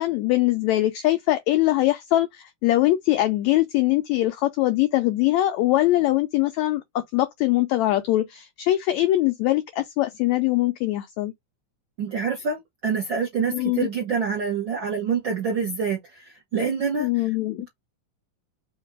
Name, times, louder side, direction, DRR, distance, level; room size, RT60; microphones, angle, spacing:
voice 1, 0.0-11.3 13.5-13.9 17.0-17.7, left 16 dB, 85° left, 1.6 m, -22 dB
voice 2, 12.0-17.2, right 6 dB, 65° right, 1.1 m, -26 dB
5.0 x 2.6 x 3.5 m
omnidirectional pair, 3.8 m